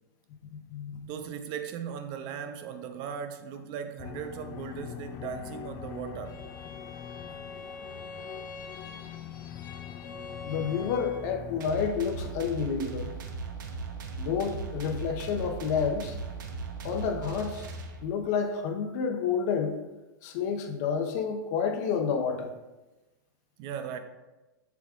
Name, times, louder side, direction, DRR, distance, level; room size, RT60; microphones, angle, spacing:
voice 1, 0.5-1.1 10.5-13.1 14.2-16.2 16.8-17.7 18.0-19.8 20.2-22.5, left 6 dB, 55° left, 0.9 m, -29 dB
voice 2, 1.1-6.4 23.6-24.0, right 7 dB, 45° right, 0.6 m, -38 dB
sound 1, 4.0-11.6, left 9 dB, 35° left, 0.4 m, -42 dB
Bowed string instrument, 6.2-11.4, left 3 dB, 85° left, 0.8 m, -45 dB
sound 2, 11.6-18.3, right 4 dB, 70° right, 0.9 m, -38 dB
7.0 x 6.2 x 2.4 m
hypercardioid pair, 115°, 11 cm